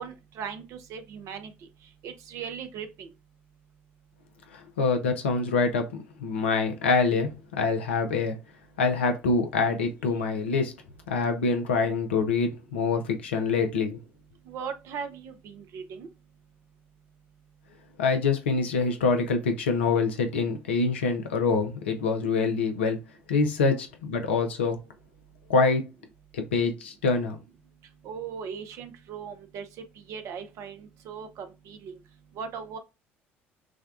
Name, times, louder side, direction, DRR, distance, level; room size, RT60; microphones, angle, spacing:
voice 1, 0.0-1.5 2.0-3.1 14.5-16.1 28.0-29.6 30.1-31.9 32.4-32.8, right 6 dB, 55° right, 0.7 m, -38 dB
voice 2, 4.5-5.9 6.2-8.4 8.8-10.8 11.1-14.0 18.0-23.0 23.3-24.8 25.5-25.9 26.3-27.4, left 4 dB, 80° left, 0.7 m, -25 dB
6.0 x 2.3 x 2.4 m
figure-of-eight pair, 55°, 6 cm